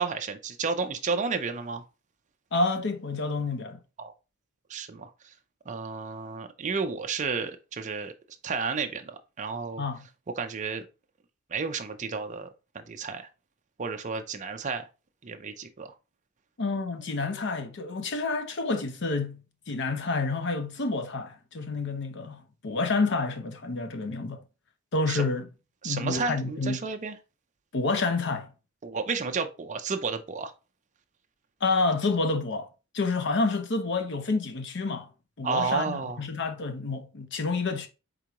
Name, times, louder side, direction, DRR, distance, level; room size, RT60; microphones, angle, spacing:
voice 1, 0.0-1.8 4.0-4.1 4.7-5.1 5.7-8.1 8.4-9.8 10.4-10.8 11.5-12.5 12.7-13.3 13.8-14.9 15.2-15.9 25.1-25.2 25.8-27.2 28.8-30.5 35.4-36.2, right 5 dB, 35° right, 0.5 m, -31 dB
voice 2, 2.5-3.8 9.8-10.0 16.6-24.4 24.9-25.5 25.8-26.8 27.7-28.5 31.6-32.7 32.9-35.1 35.4-37.9, left 3 dB, 55° left, 0.7 m, -29 dB
4.9 x 3.7 x 2.9 m
head